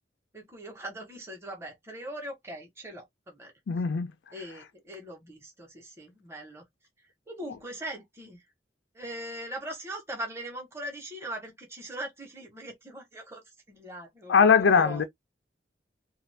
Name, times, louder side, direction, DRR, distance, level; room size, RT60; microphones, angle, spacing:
voice 1, 0.3-3.5 4.3-6.6 7.3-8.4 8.9-15.0, right 1 dB, 15° right, 1.0 m, -40 dB
voice 2, 3.7-4.1 14.3-15.0, left 6 dB, 90° left, 0.4 m, -20 dB
2.5 x 2.4 x 3.3 m
head